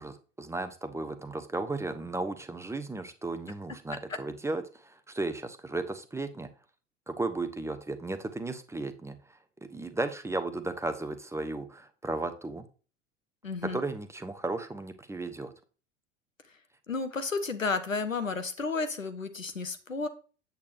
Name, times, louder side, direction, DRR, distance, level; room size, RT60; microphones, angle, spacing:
voice 1, 0.0-6.5 7.1-12.7 13.7-15.5, right 2 dB, 5° right, 9 dB, 0.7 m, -35 dB
voice 2, 13.4-13.8 16.9-20.1, left 4 dB, 90° left, 11 dB, 0.9 m, -32 dB
8.4 x 8.1 x 2.6 m, 0.36 s
figure-of-eight pair, 75°, 38 cm